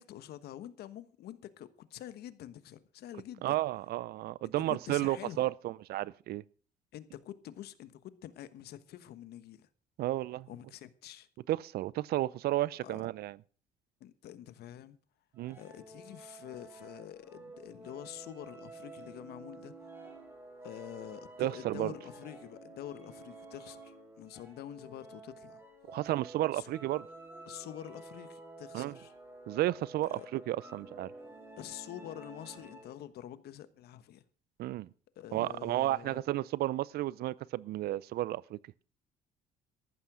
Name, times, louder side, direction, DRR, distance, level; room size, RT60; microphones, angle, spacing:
voice 1, 0.0-3.6 4.4-5.5 6.9-9.7 10.5-11.3 12.8-13.0 14.0-15.0 15.6-19.7 20.6-25.6 26.5-26.7 27.5-29.1 30.1-30.3 31.6-34.2 35.1-36.2, left 12 dB, 70° left, 1.2 m, -47 dB
voice 2, 3.4-6.4 10.0-10.5 11.5-13.4 15.4-15.6 21.4-21.9 25.9-27.1 28.7-28.9 29.5-31.1 34.6-34.9 35.3-38.6, right 15 dB, 65° right, 0.5 m, -32 dB
sound 1, 15.4-33.1, right 2 dB, 15° right, 5.5 m, -51 dB
14.0 x 12.0 x 4.8 m
cardioid pair, 110°, 17 cm